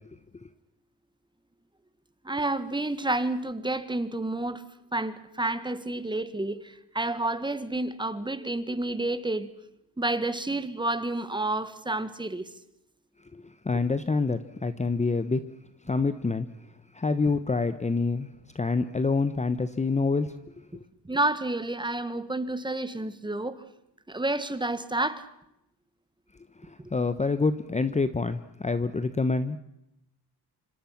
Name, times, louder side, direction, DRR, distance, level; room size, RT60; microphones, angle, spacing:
voice 1, 2.2-4.6 4.9-9.5 10.0-12.5 13.7-13.8 21.1-23.6 24.1-25.3, right 2 dB, 10° right, 13 dB, 1.7 m, -30 dB
voice 2, 13.3-15.4 15.8-16.5 16.9-18.3 18.5-20.4 26.6-29.6, left 4 dB, 15° left, 12 dB, 1.0 m, -27 dB
26.5 x 26.0 x 5.9 m, 0.83 s
cardioid pair, 115°, 42 cm